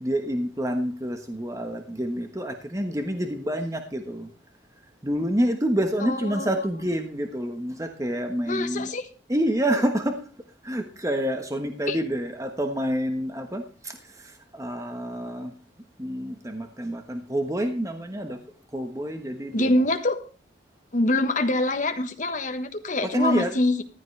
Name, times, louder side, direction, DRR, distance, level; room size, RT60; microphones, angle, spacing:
voice 1, 0.0-4.3 5.0-8.9 9.3-10.2 10.6-13.6 14.5-15.5 16.0-18.4 18.7-19.7 23.0-23.5, equal, 15° right, 5 dB, 1.2 m, -28 dB
voice 2, 6.1-6.7 8.5-9.1 11.9-12.0 19.5-20.2 20.9-23.8, left 1 dB, 45° left, 6 dB, 1.4 m, -24 dB
14.5 x 12.5 x 3.3 m, 0.38 s
head